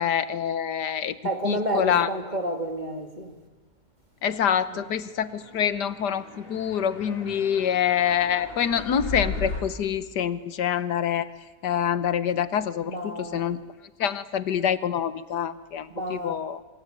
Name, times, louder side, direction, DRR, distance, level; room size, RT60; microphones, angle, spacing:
voice 1, 0.0-1.2 1.4-2.1 4.2-11.3 11.6-13.6 14.0-16.6, left 8 dB, 85° left, 1.7 m, -26 dB
voice 2, 1.2-3.4 4.7-4.8 12.8-13.5 15.9-16.4, right 1 dB, 25° right, 2.4 m, -30 dB
sound 1, 5.2-9.6, left 3 dB, 35° left, 3.2 m, -37 dB
27.0 x 24.0 x 9.1 m
omnidirectional pair, 1.8 m